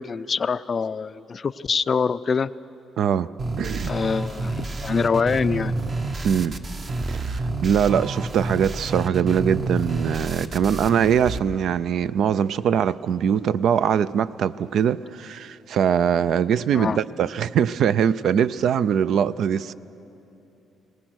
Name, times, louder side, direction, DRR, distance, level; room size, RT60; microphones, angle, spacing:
voice 1, 0.0-2.5 3.8-5.8 16.7-17.0, left 5 dB, 40° left, 0.4 m, -25 dB
voice 2, 3.0-3.3 3.6-3.9 6.2-6.6 7.1-19.7, right 8 dB, 70° right, 0.4 m, -22 dB
sound 1, 3.4-11.4, right 2 dB, 35° right, 1.1 m, -29 dB
22.0 x 18.5 x 6.3 m
cardioid pair, 90°, 0 cm